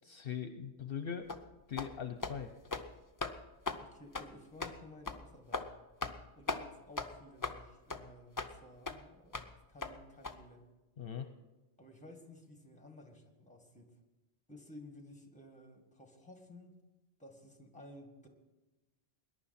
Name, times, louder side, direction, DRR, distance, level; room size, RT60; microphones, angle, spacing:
voice 1, 0.0-1.3 1.7-2.5 11.0-11.3, left 8 dB, 60° left, 8 dB, 0.9 m, -40 dB
sound 1, 1.3-1.4 1.8-1.9 2.2-2.4 2.7-2.9 3.2-3.3 3.7-3.8 4.1-4.3 4.6-4.7 5.1-5.2 5.5-5.7 6.0-6.2 6.5-6.6 7.0-7.1 7.4-7.6 7.9-8.0 8.4-8.5 8.9-9.0 9.3-9.5 9.8-9.9 10.2-10.3, left 3 dB, 25° left, 0.5 m, -38 dB
voice 2, 3.8-5.7 6.3-10.6 11.8-13.9 14.5-16.8 17.2-18.3, left 1 dB, 5° left, 3 dB, 1.9 m, -55 dB
20.5 x 11.0 x 4.2 m, 1.1 s
omnidirectional pair, 1.1 m